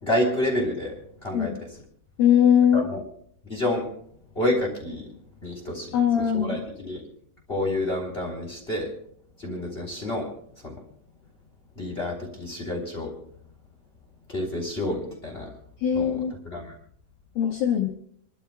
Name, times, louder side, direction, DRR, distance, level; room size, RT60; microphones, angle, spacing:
voice 1, 0.0-1.8 2.7-3.0 3.5-3.8 4.3-5.1 5.4-7.0 7.5-8.9 9.4-10.3 10.6-10.7 11.8-13.1 14.3-15.5 15.9-16.7, left 1 dB, 15° left, 1 dB, 2.5 m, -29 dB
voice 2, 2.2-2.9 5.9-6.6 15.8-16.3 17.4-17.9, left 8 dB, 80° left, 0 dB, 2.0 m, -20 dB
29.0 x 12.5 x 2.3 m, 0.69 s
omnidirectional pair, 5.8 m